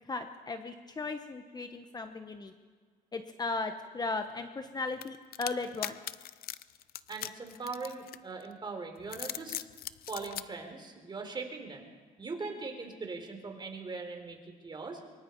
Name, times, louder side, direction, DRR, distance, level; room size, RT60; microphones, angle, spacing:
voice 1, 0.1-2.5 3.1-6.0, left 3 dB, 25° left, 7 dB, 1.2 m, -36 dB
sound 1, 5.0-8.5 9.0-10.5, left 13 dB, 65° left, 0.7 m, -40 dB
voice 2, 7.1-9.5 10.1-11.9 12.2-14.4 14.6-15.0, right 4 dB, 25° right, 4 dB, 3.9 m, -40 dB
24.5 x 23.5 x 4.7 m, 1.5 s
cardioid pair, 110°, 17 cm